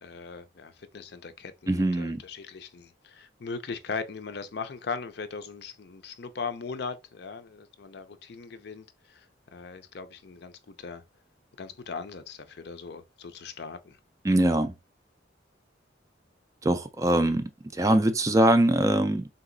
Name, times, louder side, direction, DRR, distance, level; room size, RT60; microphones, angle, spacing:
voice 1, 0.0-9.2 9.5-11.0 11.6-14.0, left 5 dB, 60° left, 0.5 m, -39 dB
voice 2, 1.7-2.2 14.2-14.7 16.6-17.4 17.7-19.3, right 1 dB, 15° right, 0.4 m, -22 dB
3.9 x 2.8 x 3.8 m
head